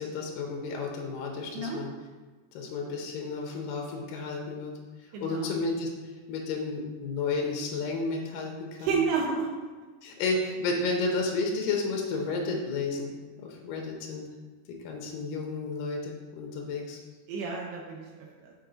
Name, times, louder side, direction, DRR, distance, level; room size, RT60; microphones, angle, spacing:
voice 1, 0.0-1.9 2.5-4.7 5.0-5.9 6.3-9.0 10.0-13.1 13.4-14.2 14.7-17.0, left 3 dB, 80° left, 1 dB, 2.0 m, -32 dB
voice 2, 5.1-5.5 8.8-9.5 17.3-18.5, right 5 dB, 85° right, -1 dB, 2.0 m, -31 dB
6.8 x 4.3 x 3.9 m, 1.3 s
omnidirectional pair, 5.0 m